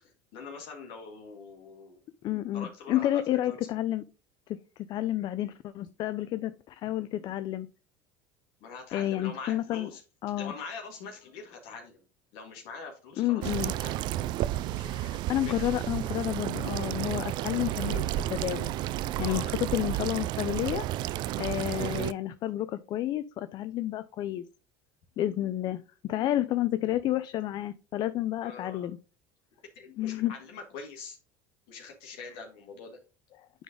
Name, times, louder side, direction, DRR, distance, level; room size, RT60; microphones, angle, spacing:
voice 1, 0.0-2.0 2.5-3.2 3.5-3.6 8.6-10.0 10.4-12.0 12.3-13.5 13.8-14.0 14.7-14.9 15.4-15.5 19.2-19.4 28.4-28.9 29.7-31.2 31.7-33.0, left 4 dB, 65° left, 1 dB, 1.8 m, -43 dB
voice 2, 2.2-4.0 4.9-7.7 8.9-9.9 10.2-10.5 13.2-13.7 14.9-18.7 19.2-20.9 21.4-24.4 25.2-29.0 30.0-30.3, left 13 dB, 50° left, 13 dB, 0.5 m, -30 dB
sound 1, 13.4-22.1, right 14 dB, 55° right, 0.4 m, -32 dB
9.1 x 3.9 x 3.7 m, 0.34 s
supercardioid pair, 95°, 9 cm